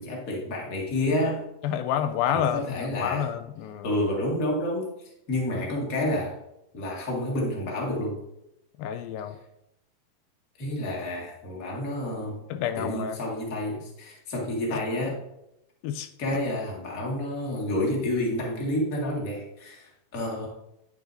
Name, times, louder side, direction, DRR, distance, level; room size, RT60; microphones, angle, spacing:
voice 1, 0.0-1.5 2.3-3.3 3.8-4.9 5.3-6.4 6.7-8.2 10.6-12.5 12.8-15.2 16.2-20.5, left 1 dB, 30° left, -2 dB, 1.8 m, -29 dB
voice 2, 1.6-3.9 8.8-9.4 12.5-13.2 15.8-16.1, left 9 dB, 85° left, 9 dB, 2.4 m, -29 dB
9.6 x 8.9 x 2.7 m, 0.85 s
omnidirectional pair, 4.1 m